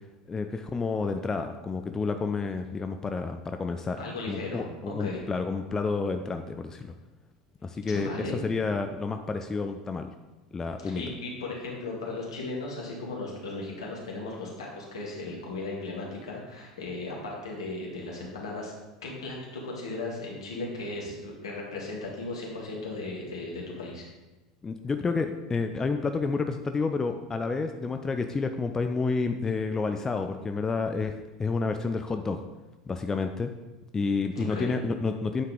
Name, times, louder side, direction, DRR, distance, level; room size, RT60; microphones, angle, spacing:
voice 1, 0.3-4.0 4.3-6.9 7.6-10.1 10.5-11.0 24.6-31.1 31.4-32.4 32.9-33.5 33.9-35.4, left 4 dB, 20° left, 7 dB, 0.4 m, -30 dB
voice 2, 4.0-5.2 7.9-8.4 10.8-18.7 19.0-24.1 34.3-34.8, left 2 dB, 70° left, -2 dB, 1.8 m, -36 dB
8.8 x 4.7 x 3.7 m, 1.1 s
figure-of-eight pair, 75°, 3 cm